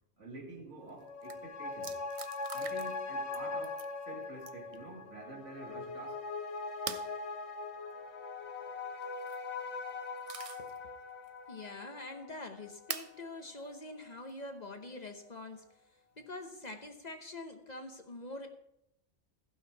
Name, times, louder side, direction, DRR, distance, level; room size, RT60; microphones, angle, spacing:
voice 1, 0.2-2.0 2.5-6.2, right 1 dB, 80° right, 2.6 m, -48 dB
sound 1, 0.9-13.8 14.1-14.2, left 3 dB, 65° left, 1.3 m, -41 dB
sound 2, 0.9-1.0 1.2-1.4 1.8-3.0 3.3-3.9 4.4-4.8 6.9-7.1 9.0-9.4 9.9-10.8 11.2-11.3 12.9-13.2 14.3-14.4 16.4-16.9, right 6 dB, 50° right, 0.4 m, -43 dB
voice 2, 11.5-15.7 16.2-18.5, left 2 dB, 40° left, 1.0 m, -45 dB
15.0 x 5.9 x 4.6 m
omnidirectional pair, 1.2 m